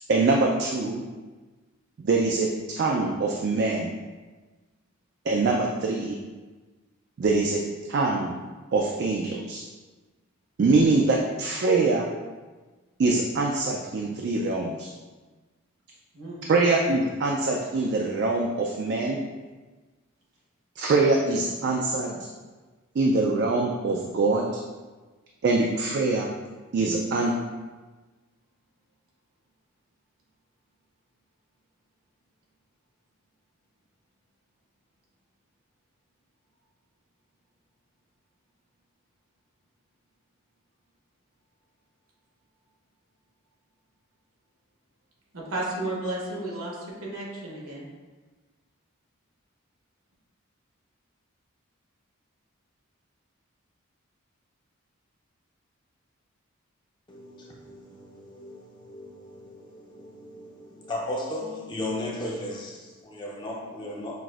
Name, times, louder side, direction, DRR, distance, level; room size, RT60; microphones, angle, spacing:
voice 1, 0.1-1.0 2.0-2.5 2.8-3.9 5.3-6.2 7.2-7.6 7.9-8.3 8.7-9.6 10.6-12.1 13.0-14.9 16.5-19.2 20.8-22.2 23.0-24.5 25.4-26.3 26.7-27.4, right 3 dB, 50° right, 0 dB, 0.3 m, -24 dB
voice 2, 45.3-47.9, right 2 dB, 80° right, -4 dB, 1.1 m, -33 dB
voice 3, 57.1-64.2, left 1 dB, 20° left, -3 dB, 0.5 m, -36 dB
5.8 x 2.5 x 2.4 m, 1.3 s
head